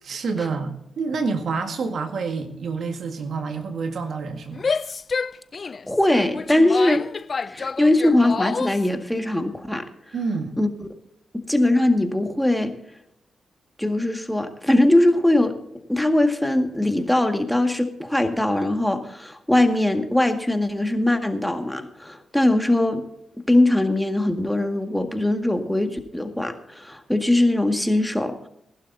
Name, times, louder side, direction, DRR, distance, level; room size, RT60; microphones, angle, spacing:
voice 1, 0.0-4.7 10.1-10.5, right 4 dB, 65° right, 6 dB, 1.7 m, -28 dB
Female speech woman speaking / Yell, 4.5-8.9, left 5 dB, 50° left, 0.4 m, -28 dB
voice 2, 5.9-7.1 7.5-9.9 10.6-10.7 11.3-12.7 13.8-15.6 15.9-23.1 23.4-28.5, left 1 dB, 5° left, 6 dB, 1.9 m, -21 dB
20.0 x 12.0 x 2.8 m, 0.76 s
hypercardioid pair, 40°, 0 cm